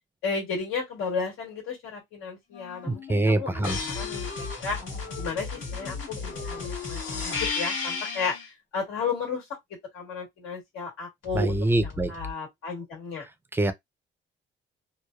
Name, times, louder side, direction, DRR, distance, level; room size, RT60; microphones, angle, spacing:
voice 1, 0.2-4.8 5.2-9.4 9.9-13.2, left 5 dB, 90° left, 1.5 m, -33 dB
Wind instrument woodwind instrument, 2.5-4.6 5.0-6.0 6.3-8.5, left 7 dB, 45° left, 0.5 m, -41 dB
voice 2, 2.9-3.8 11.3-12.1 13.5-13.7, right 1 dB, 10° right, 0.4 m, -24 dB
sound 1, 3.6-8.5 11.2-12.3, left 4 dB, 75° left, 1.3 m, -34 dB
3.0 x 2.0 x 2.2 m
cardioid pair, 90°, 20 cm